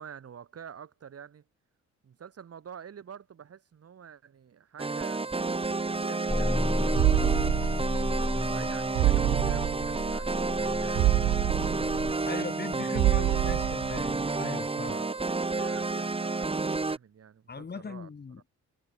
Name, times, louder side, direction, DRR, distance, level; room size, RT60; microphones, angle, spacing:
voice 1, 0.0-1.4 2.0-7.0 8.1-11.5 11.8-13.5 14.7-15.2 15.5-18.1, right 8 dB, 50° right, 6.5 m, -48 dB
sound 1, 4.8-17.0, right 3 dB, 20° right, 1.7 m, -30 dB
sound 2, 6.3-12.1, left 1 dB, 5° left, 1.5 m, -32 dB
voice 2, 6.8-7.1 12.2-15.0 17.5-18.4, left 5 dB, 35° left, 2.9 m, -39 dB
sound 3, 7.0-8.3 8.6-8.7 9.0-10.3 10.6-10.7 11.0-12.7 13.0-14.3 14.6-14.7, right 18 dB, 85° right, 0.6 m, -27 dB
cardioid pair, 90°, 30 cm